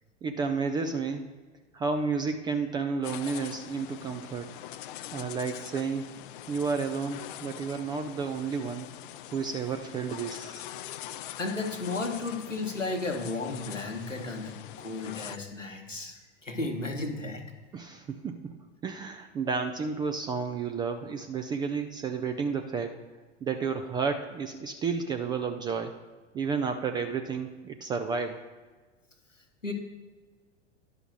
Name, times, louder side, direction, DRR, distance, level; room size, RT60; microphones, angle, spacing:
voice 1, 0.2-1.3 1.7-4.6 5.1-6.1 6.5-8.9 9.3-10.7 17.7-18.6 18.8-22.9 23.4-26.0 26.3-28.5, right 5 dB, 10° right, 6 dB, 0.3 m, -31 dB
sound 1, 3.0-15.4, left 12 dB, 45° left, 0.5 m, -43 dB
voice 2, 11.4-17.4 29.6-29.7, left 3 dB, 90° left, 4 dB, 1.3 m, -34 dB
10.5 x 5.6 x 6.1 m, 1.3 s
figure-of-eight pair, 85°, 37 cm